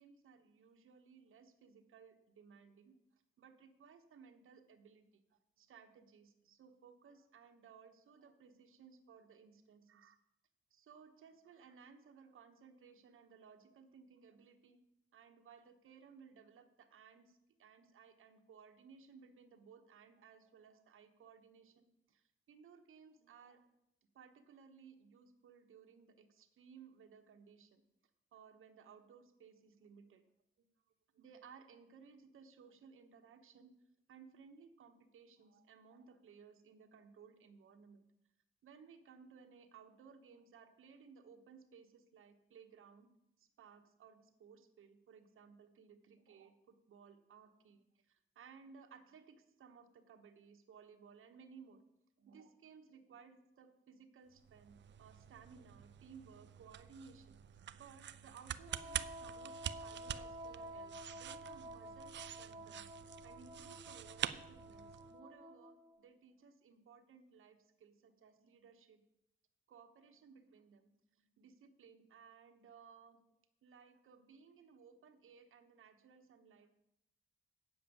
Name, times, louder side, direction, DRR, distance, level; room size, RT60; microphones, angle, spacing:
voice 1, 0.0-3.0 3.4-10.2 10.7-14.8 15.1-23.7 24.1-27.8 28.3-30.2 31.1-33.7 34.1-38.0 38.6-43.1 43.4-51.8 52.2-57.4 57.7-62.9 63.2-69.0 69.7-73.2 73.6-76.7, right 6 dB, 75° right, 5 dB, 1.2 m, -60 dB
sound 1, 54.4-65.1, right 10 dB, 60° right, 0.5 m, -47 dB
Wind instrument woodwind instrument, 58.7-66.0, right 1 dB, 20° right, 1.4 m, -51 dB
8.9 x 7.7 x 7.1 m, 0.86 s
wide cardioid pair, 150°, 21 cm